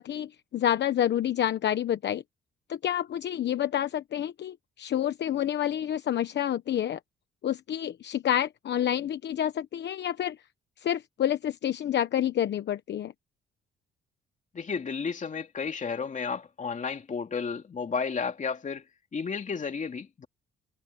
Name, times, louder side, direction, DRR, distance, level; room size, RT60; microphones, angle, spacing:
voice 1, 0.0-2.2 2.7-7.0 7.4-10.4 10.8-13.1, left 10 dB, 60° left, 1.0 m, -28 dB
voice 2, 14.5-18.8 19.1-20.3, left 5 dB, 40° left, 2.7 m, -32 dB
cardioid pair, 90°, 20 cm